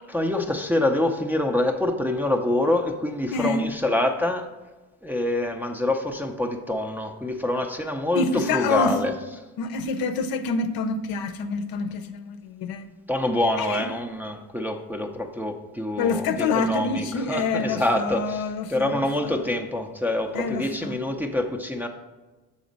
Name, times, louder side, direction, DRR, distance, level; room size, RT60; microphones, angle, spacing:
voice 1, 0.1-4.4 5.0-8.2 8.5-9.1 13.1-21.9, left 1 dB, 5° right, 0.5 m, -26 dB
voice 2, 3.3-3.6 8.2-9.0 9.6-12.9 13.6-13.9 16.0-19.4 20.3-21.0, left 4 dB, 65° left, 0.7 m, -27 dB
7.0 x 4.2 x 5.1 m
cardioid pair, 100°, 39 cm